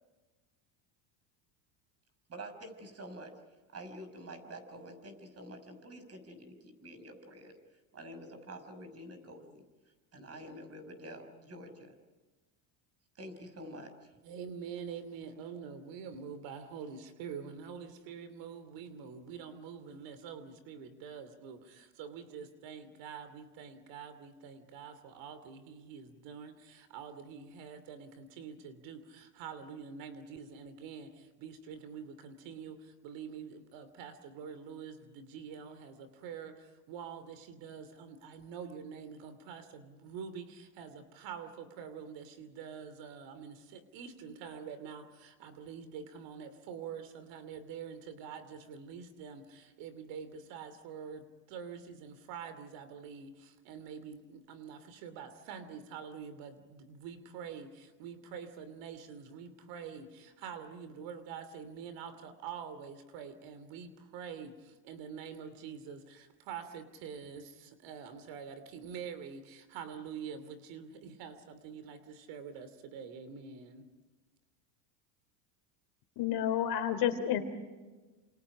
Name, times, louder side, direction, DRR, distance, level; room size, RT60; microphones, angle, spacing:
voice 1, 2.3-3.4 3.7-7.6 7.9-9.7 10.1-12.0 13.1-14.2, right 1 dB, 30° right, 8 dB, 6.2 m, -48 dB
voice 2, 14.2-73.9, right 7 dB, 60° right, 11 dB, 2.9 m, -46 dB
voice 3, 76.2-77.4, left 10 dB, 50° left, 8 dB, 3.3 m, -30 dB
28.5 x 28.0 x 5.0 m, 1.2 s
supercardioid pair, 110°, 49 cm